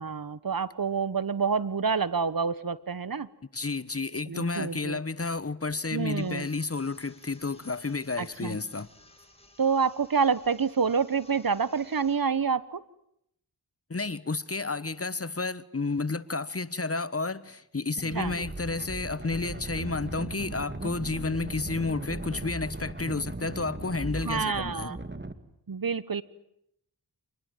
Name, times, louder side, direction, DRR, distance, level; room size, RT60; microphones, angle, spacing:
voice 1, 0.0-3.3 4.3-5.0 5.9-6.5 8.2-8.6 9.6-12.8 18.1-18.3 24.2-25.0 25.7-26.2, right 5 dB, 55° right, 1.2 m, -28 dB
voice 2, 3.5-8.9 13.9-24.9, left 3 dB, 35° left, 1.2 m, -31 dB
sound 1, 6.2-12.2, left 1 dB, 15° left, 7.5 m, -56 dB
sound 2, 18.0-25.3, right 2 dB, 25° right, 2.3 m, -38 dB
27.0 x 20.5 x 9.2 m
cardioid pair, 50°, 42 cm